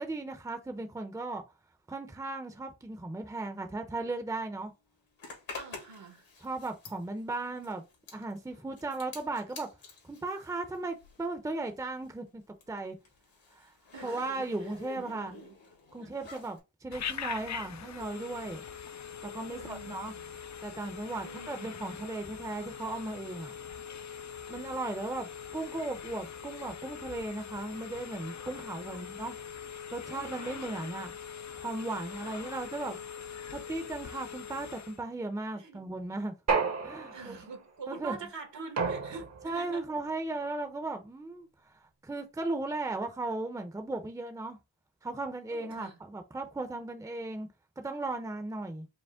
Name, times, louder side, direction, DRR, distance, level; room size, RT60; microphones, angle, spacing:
voice 1, 0.0-1.4 1.9-4.7 6.4-7.8 8.1-9.7 10.0-12.4 12.7-13.0 13.5-13.7 14.0-15.4 15.9-18.6 19.2-20.1 20.6-23.5 24.5-29.3 29.9-31.1 31.6-33.0 33.5-36.3 36.8-37.3 37.9-38.2 39.4-41.5 42.0-44.6 45.0-47.5 47.8-48.9, right 2 dB, 5° right, 0.7 m, -36 dB
Zipper (clothing), 5.2-11.4 11.6-16.6, left 4 dB, 75° left, 1.8 m, -49 dB
voice 2, 5.6-6.3 13.9-14.3 14.6-15.6 16.0-16.2 19.5-20.4 21.2-21.8 28.9-29.1 30.1-31.1 32.2-33.0 35.5-35.9 37.1-39.8 45.5-46.0, right 4 dB, 65° right, 1.3 m, -46 dB
Telephone, 16.9-35.0, left 7 dB, 40° left, 0.5 m, -42 dB
sound 1, 36.5-37.5 38.8-39.6, right 4 dB, 35° right, 0.9 m, -31 dB
5.2 x 2.0 x 3.6 m
cardioid pair, 55°, 46 cm